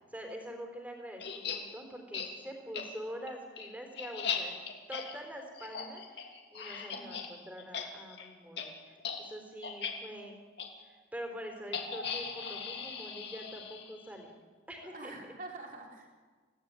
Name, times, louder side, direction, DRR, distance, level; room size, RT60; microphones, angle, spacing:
voice 1, 0.0-4.6 4.9-10.4 10.8-14.3 14.7-15.1, equal, 10° right, 3 dB, 4.0 m, -45 dB
sound 1, 1.2-1.6 2.1-2.3 2.7-2.8 3.3-7.3 7.6-8.3 8.6-8.7 9.0-9.2 9.6-9.9 10.6-10.7 11.7-14.1, left 6 dB, 65° left, 3.1 m, -38 dB
voice 2, 6.9-7.3 14.8-16.1, right 2 dB, 45° right, 1 dB, 3.9 m, -46 dB
27.0 x 17.0 x 9.1 m, 1.5 s
head